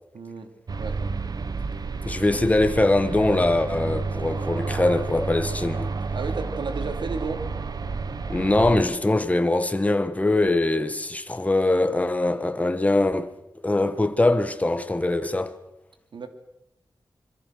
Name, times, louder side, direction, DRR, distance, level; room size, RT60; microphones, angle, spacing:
voice 1, 0.1-0.5 0.8-1.0 2.2-2.3 6.1-7.4 16.1-16.3, right 4 dB, 80° right, 2.8 m, -32 dB
sound 1, 0.7-8.8, right 4 dB, 55° right, 1.3 m, -30 dB
voice 2, 2.0-5.9 8.3-13.3 13.6-15.6, left 2 dB, 20° left, 1.5 m, -22 dB
26.0 x 23.0 x 6.5 m
wide cardioid pair, 125°, 8 cm